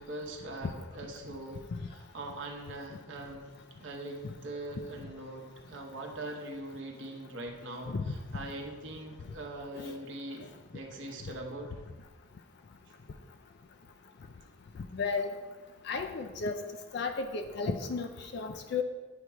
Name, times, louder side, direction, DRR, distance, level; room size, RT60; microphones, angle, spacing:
voice 1, 0.0-3.5 3.8-10.5 10.7-11.7, right 1 dB, 60° right, 2 dB, 0.8 m, -42 dB
voice 2, 14.9-15.3 15.8-16.6 16.9-18.8, left 4 dB, 55° left, 6 dB, 0.4 m, -33 dB
8.1 x 3.0 x 4.6 m, 1.3 s
head